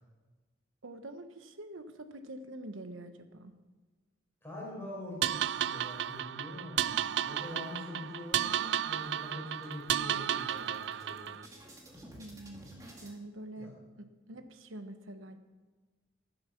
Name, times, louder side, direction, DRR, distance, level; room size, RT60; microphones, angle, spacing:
voice 1, 0.8-3.5 12.2-15.4, right 1 dB, 85° right, 8 dB, 1.2 m, -46 dB
voice 2, 4.4-7.0 7.2-11.3 13.6-13.7, left 1 dB, 10° left, -4 dB, 5.0 m, -44 dB
sound 1, 5.2-11.5, right 10 dB, 60° right, 0.3 m, -33 dB
sound 2, 7.8-8.6 8.9-9.1 9.4-13.1, right 1 dB, 15° right, 2.0 m, -54 dB
15.5 x 9.4 x 5.9 m, 1.3 s
head